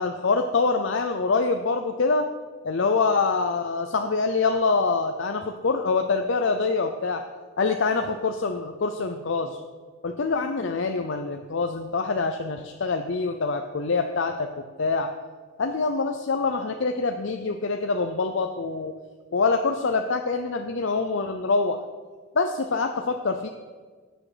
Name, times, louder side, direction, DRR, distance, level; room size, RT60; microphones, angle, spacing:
voice 1, 0.0-2.3 2.6-7.2 7.6-9.6 10.0-15.1 15.6-18.9 19.3-21.8 22.3-23.5, left 4 dB, 65° left, 6 dB, 0.6 m, -25 dB
16.0 x 6.3 x 5.0 m, 1.5 s
head